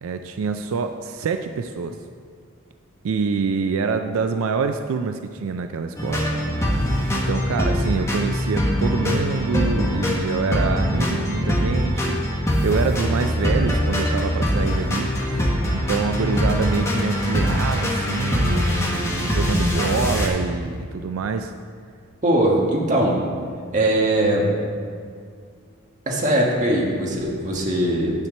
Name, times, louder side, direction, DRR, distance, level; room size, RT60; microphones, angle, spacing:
voice 1, 0.0-2.0 3.0-6.3 6.6-21.5, right 5 dB, 85° right, 7 dB, 0.4 m, -26 dB
sound 1, 6.0-20.3, equal, 15° left, 1.1 m, -22 dB
voice 2, 22.2-23.2 23.7-24.4 26.1-28.3, right 1 dB, 35° right, -2 dB, 1.4 m, -20 dB
9.7 x 4.4 x 7.4 m, 2.1 s
head